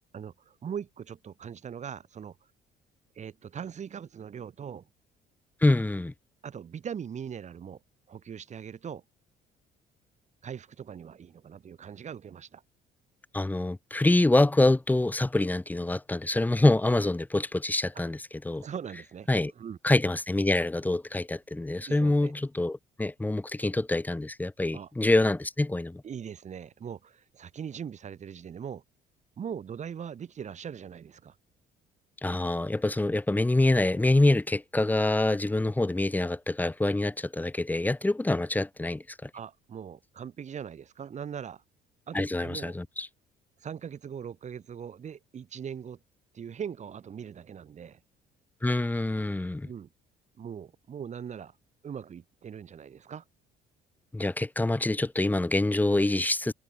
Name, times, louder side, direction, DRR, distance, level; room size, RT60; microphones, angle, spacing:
voice 1, 0.1-2.4 3.2-4.9 6.4-7.8 8.1-9.0 10.4-12.6 18.6-19.8 21.9-22.3 24.7-24.9 26.0-28.8 29.4-31.4 39.3-41.6 42.1-42.7 43.6-46.0 46.3-48.0 49.6-49.9 50.4-51.6 51.8-53.2, right 8 dB, 45° right, 7.3 m, -40 dB
voice 2, 5.6-6.1 13.3-18.6 19.3-19.5 19.8-26.0 32.2-39.3 42.1-43.1 48.6-49.7 54.1-56.5, left 2 dB, 10° left, 2.0 m, -26 dB
cardioid pair, 110°, 17 cm